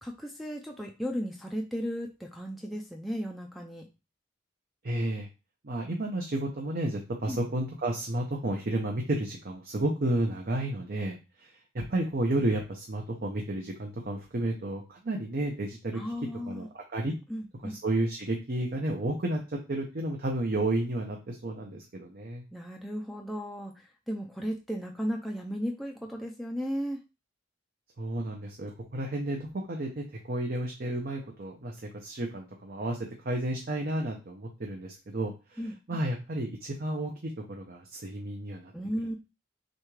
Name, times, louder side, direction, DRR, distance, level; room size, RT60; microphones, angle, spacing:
voice 1, 0.0-3.9 7.3-7.4 15.9-16.7 17.3-17.8 22.5-27.0 35.6-36.0 38.7-39.1, equal, ahead, 1 dB, 0.4 m, -35 dB
voice 2, 4.8-5.3 5.6-16.0 16.5-17.1 17.6-22.4 28.0-35.6 35.9-38.7, right 1 dB, 50° right, 1 dB, 0.7 m, -32 dB
6.3 x 2.4 x 3.2 m, 0.29 s
head